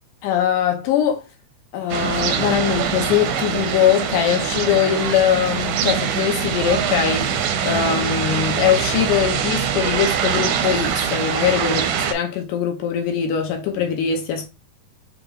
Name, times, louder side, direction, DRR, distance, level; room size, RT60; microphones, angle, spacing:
voice 1, 0.2-1.2 1.7-11.8 12.1-14.5, left 9 dB, 75° left, 1.9 m, -21 dB
sound 1, 1.9-12.1, right 7 dB, 80° right, 2.0 m, -23 dB
7.0 x 2.5 x 2.9 m
omnidirectional pair, 4.6 m